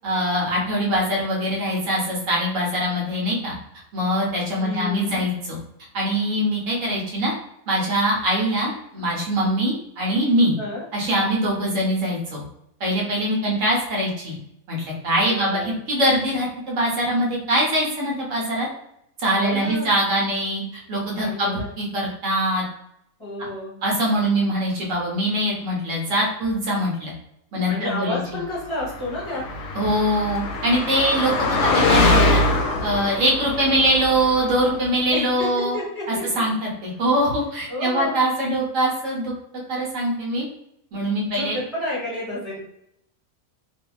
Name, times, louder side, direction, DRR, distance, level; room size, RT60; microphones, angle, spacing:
voice 1, 0.0-3.5 3.9-5.6 5.9-7.3 7.7-10.6 10.9-12.4 12.8-14.4 14.7-18.7 19.2-22.6 23.8-27.1 27.5-28.2 29.7-32.4 32.8-35.7 36.4-39.3 39.7-40.5 40.9-41.6, right 1 dB, 60° right, -3 dB, 1.1 m, -23 dB
voice 2, 4.6-5.3 10.6-10.8 15.2-15.8 19.4-19.9 21.2-21.7 23.2-23.8 27.7-29.4 35.1-36.4 37.7-38.2 41.2-42.6, left 1 dB, 20° left, -7 dB, 1.0 m, -30 dB
Car passing by, 28.9-34.8, left 2 dB, 65° left, 0.7 m, -23 dB
2.6 x 2.6 x 2.3 m, 0.77 s
omnidirectional pair, 1.6 m